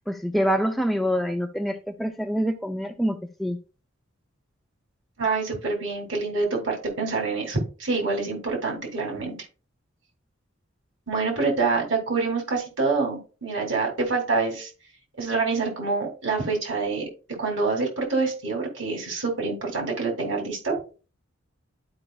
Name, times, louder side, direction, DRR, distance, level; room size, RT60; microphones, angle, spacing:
voice 1, 0.1-3.6, equal, ahead, 0.4 m, -26 dB
voice 2, 5.2-9.3 11.1-14.7 15.2-17.1 17.4-20.7, right 4 dB, 65° right, 2.7 m, -26 dB
12.0 x 5.0 x 2.3 m
head